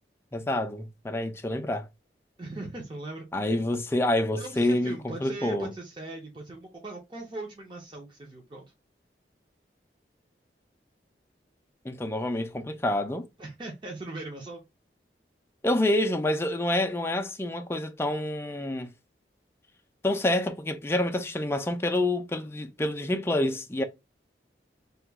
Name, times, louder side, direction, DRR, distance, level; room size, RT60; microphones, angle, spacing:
voice 1, 0.3-1.9 3.3-5.7 11.8-13.3 15.6-18.9 20.0-23.8, left 1 dB, 15° left, 0.4 m, -27 dB
voice 2, 2.4-3.6 4.4-8.6 13.4-14.6, right 2 dB, 25° right, 0.7 m, -40 dB
2.8 x 2.4 x 3.4 m
head